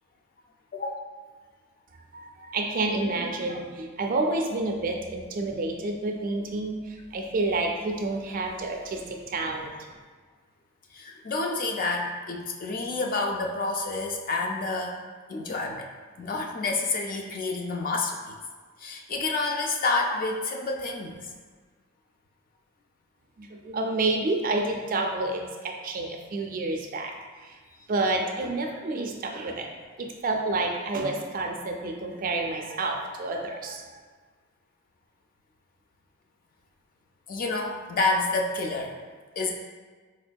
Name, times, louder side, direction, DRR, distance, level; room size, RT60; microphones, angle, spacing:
voice 1, 2.1-9.7 23.4-27.1 27.4-27.6 27.9-29.7 30.0-34.0, right 2 dB, 40° right, 2 dB, 0.3 m, -29 dB
voice 2, 10.9-15.0 15.3-15.9 16.2-18.4 18.8-21.3 37.3-39.0 39.4-39.5, left 3 dB, 40° left, 1 dB, 0.3 m, -29 dB
4.1 x 2.6 x 2.2 m, 1.5 s
head